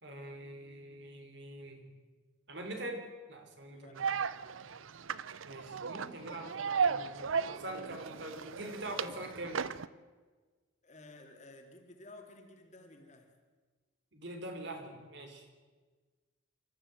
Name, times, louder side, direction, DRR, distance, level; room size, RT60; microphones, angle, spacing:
voice 1, 0.0-1.8 2.5-4.0 4.4-4.6 5.5-9.6 14.1-15.5, right 1 dB, 60° right, 4 dB, 3.5 m, -44 dB
voice 2, 3.7-4.0 10.8-13.3, left 2 dB, 35° left, 3 dB, 2.9 m, -54 dB
sound 1, 4.0-9.9, right 6 dB, 85° right, 0.6 m, -35 dB
27.5 x 14.0 x 7.8 m, 1.4 s
head